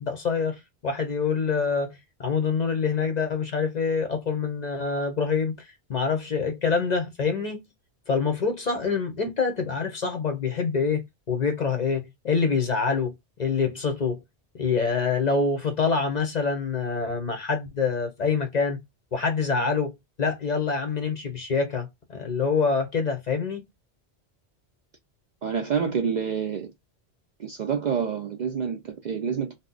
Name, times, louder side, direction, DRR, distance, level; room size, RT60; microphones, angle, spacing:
voice 1, 0.0-5.5 5.9-7.6 8.1-13.1 13.4-14.2 14.6-18.8 19.1-23.6, left 5 dB, 50° left, 0.6 m, -26 dB
voice 2, 25.4-26.7 27.4-29.6, right 6 dB, 55° right, 0.5 m, -28 dB
2.6 x 2.1 x 3.7 m
omnidirectional pair, 1.1 m